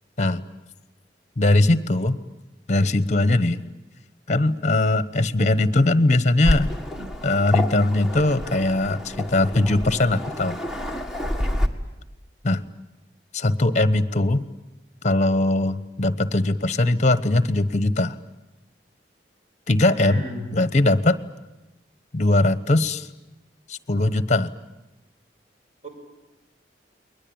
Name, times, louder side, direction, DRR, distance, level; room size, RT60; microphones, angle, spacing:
voice 1, 1.4-2.2 2.7-3.6 4.3-6.7 7.2-10.6 12.4-12.6 13.3-14.4 15.0-18.2 19.7-20.2 20.5-21.2 22.1-23.1 23.7-24.5, left 2 dB, 40° left, 14 dB, 1.1 m, -20 dB
Waves surf, 6.4-11.7, left 1 dB, ahead, 1.7 m, -28 dB
voice 2, 20.0-20.5 25.8-25.9, left 1 dB, 40° right, 3 dB, 6.1 m, -34 dB
30.0 x 21.5 x 8.9 m, 1.0 s
head